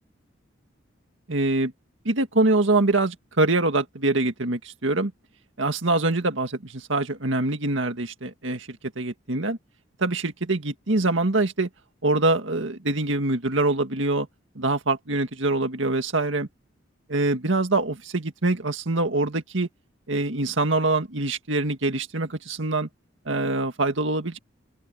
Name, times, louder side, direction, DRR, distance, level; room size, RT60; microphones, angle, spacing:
voice 1, 1.3-1.7 2.1-5.1 5.6-9.6 10.0-11.7 12.0-14.3 14.6-16.5 17.1-19.7 20.1-22.9 23.3-24.4, right 2 dB, 80° right, 1.9 m, -24 dB
open air
head